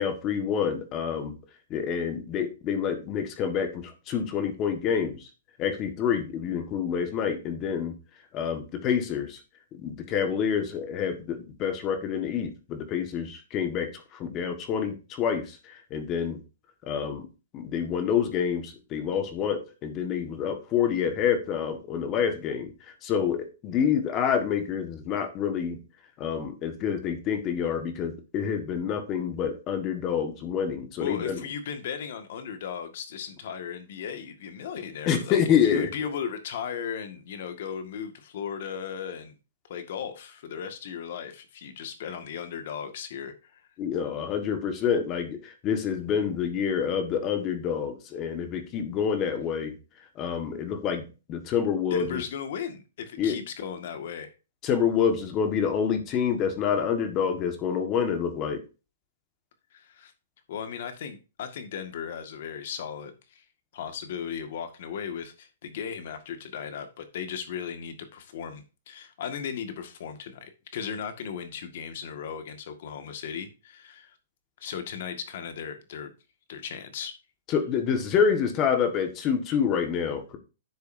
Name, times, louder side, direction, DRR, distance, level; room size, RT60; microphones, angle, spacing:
voice 1, 0.0-1.4 1.7-5.3 5.6-8.0 8.3-9.4 9.8-16.4 16.8-17.3 17.5-22.7 23.0-25.8 26.2-31.4 35.1-35.9 43.8-49.8 50.2-52.2 53.2-53.4 54.6-58.6 77.5-80.4, left 7 dB, 25° left, 1.6 m, -27 dB
voice 2, 31.0-39.4 39.7-43.6 51.9-54.3 59.7-60.1 60.5-63.4 63.7-74.2 74.6-76.1 76.5-77.1, left 7 dB, 55° left, 1.8 m, -36 dB
10.5 x 6.9 x 2.7 m
hypercardioid pair, 150°, 0 cm